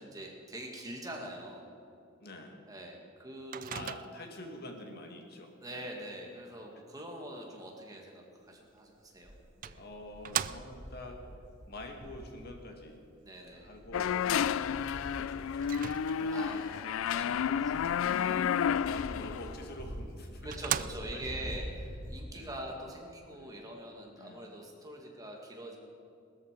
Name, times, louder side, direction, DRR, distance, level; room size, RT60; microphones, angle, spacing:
voice 1, 0.0-1.7 2.7-3.9 5.6-9.8 13.2-13.7 16.3-18.5 20.4-25.8, right 1 dB, 20° right, 0 dB, 2.1 m, -44 dB
voice 2, 2.2-2.6 3.7-5.9 9.7-11.2 11.7-13.0 13.5-15.7 16.2-16.4 18.2-21.6 22.3-22.6 23.3-23.6 24.2-24.5, left 1 dB, 50° left, 3 dB, 1.9 m, -47 dB
Microwave oven, 3.5-4.4 8.8-8.9 9.6-11.0 15.6-16.5 19.6-19.7 20.1-20.2 20.5-21.4, right 10 dB, 40° right, 0.3 m, -37 dB
sound 1, 9.2-12.6 13.4-22.2, equal, 55° right, 4.9 m, -46 dB
sound 2, 13.9-19.6, left 8 dB, 75° left, 0.3 m, -31 dB
19.0 x 13.5 x 5.2 m, 2.5 s
head